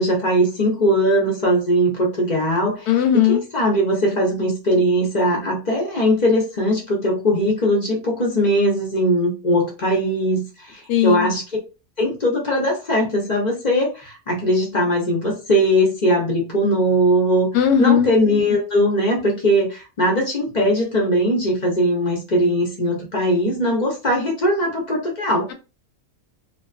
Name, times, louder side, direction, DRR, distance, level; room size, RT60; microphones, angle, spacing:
voice 1, 0.0-11.6 12.0-17.5 17.8-25.5, equal, 45° left, -1 dB, 0.6 m, -20 dB
voice 2, 2.9-3.4 10.9-11.3 17.5-18.1, left 9 dB, 90° left, 6 dB, 1.1 m, -17 dB
2.5 x 2.4 x 2.3 m, 0.31 s
omnidirectional pair, 1.6 m